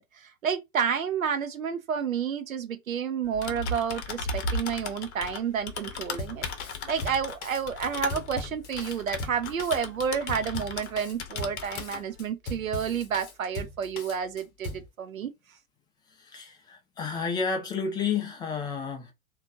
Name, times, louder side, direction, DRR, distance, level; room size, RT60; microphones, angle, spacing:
voice 1, 0.2-6.5 6.9-15.3, right 7 dB, 75° right, 0.7 m, -30 dB
Typing, 3.2-10.9 11.2-12.0, left 3 dB, 55° left, 0.7 m, -36 dB
Drum kit, 6.2-14.9, left 2 dB, 30° left, 1.0 m, -39 dB
voice 2, 16.2-19.1, left 5 dB, 10° left, 0.5 m, -31 dB
3.1 x 2.4 x 2.4 m
figure-of-eight pair, 100°, 41 cm